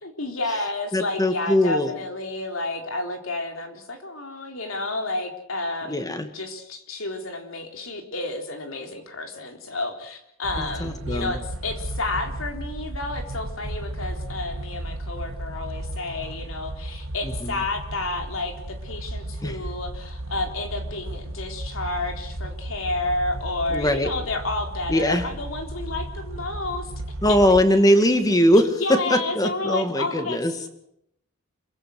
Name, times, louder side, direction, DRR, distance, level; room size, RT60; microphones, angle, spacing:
voice 1, 0.0-6.0 6.3-26.9 28.6-30.4, left 2 dB, 70° left, 4 dB, 3.9 m, -30 dB
voice 2, 0.9-1.9 5.9-6.3 10.6-11.4 17.2-17.6 19.4-19.6 23.7-24.1 24.9-25.2 27.2-30.5, equal, 20° left, 8 dB, 2.3 m, -21 dB
sound 1, 10.4-27.6, right 1 dB, 80° right, 1.5 m, -34 dB
27.5 x 15.5 x 7.9 m, 0.77 s
head